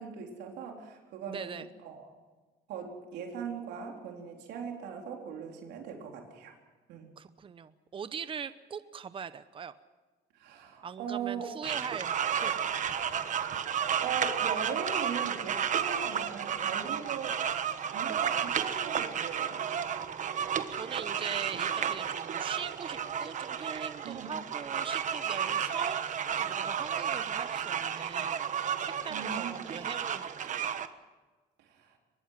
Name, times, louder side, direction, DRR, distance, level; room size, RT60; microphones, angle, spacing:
voice 1, 0.0-2.1 2.7-6.6 6.9-7.1 10.3-11.5 12.8-13.1 13.4-17.4 17.9-19.6 24.0-24.3 29.1-29.6 31.6-32.0, right 6 dB, 80° right, 1 dB, 4.0 m, -40 dB
voice 2, 1.3-1.7 7.2-9.7 10.8-12.7 20.7-30.9, right 7 dB, 30° right, 13 dB, 0.8 m, -41 dB
sound 1, 11.6-30.9, right 8 dB, 45° right, 1.3 m, -32 dB
23.5 x 21.0 x 5.9 m, 1.3 s
cardioid pair, 110°, 17 cm